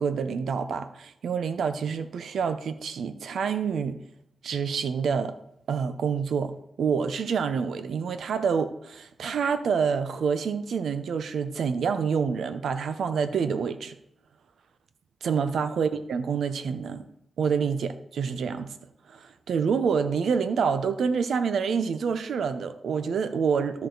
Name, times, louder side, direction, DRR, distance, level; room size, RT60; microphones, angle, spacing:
voice 1, 0.0-4.0 4.4-5.3 5.7-13.9 15.2-17.0 17.4-18.7 19.1-23.9, right 6 dB, 80° right, 11 dB, 0.7 m, -27 dB
13.5 x 4.8 x 3.9 m, 0.77 s
cardioid pair, 50°, 0 cm